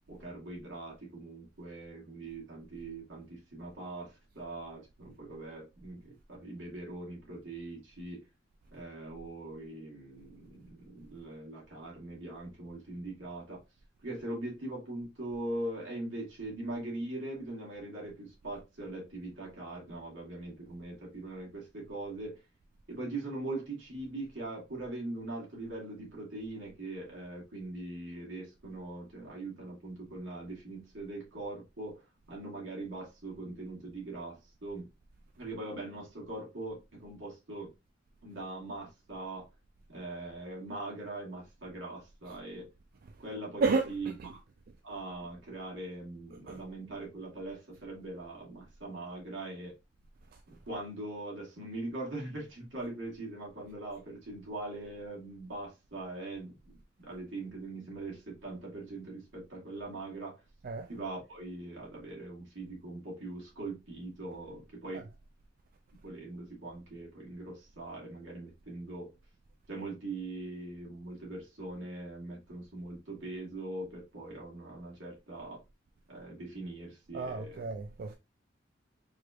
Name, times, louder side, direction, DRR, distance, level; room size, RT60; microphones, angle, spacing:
voice 1, 0.1-8.2 8.7-13.6 14.0-22.4 22.9-32.0 32.3-34.9 35.4-37.7 38.2-39.5 39.9-42.7 43.2-44.4 44.8-49.7 50.5-60.4 60.9-65.1 66.0-69.1 69.7-75.6 76.1-77.6, right 2 dB, 80° right, 2.4 m, -41 dB
voice 2, 43.6-44.4 46.3-46.6 60.6-60.9 64.9-65.0 77.1-78.2, right 4 dB, 50° right, 0.4 m, -32 dB
4.7 x 3.1 x 2.5 m
head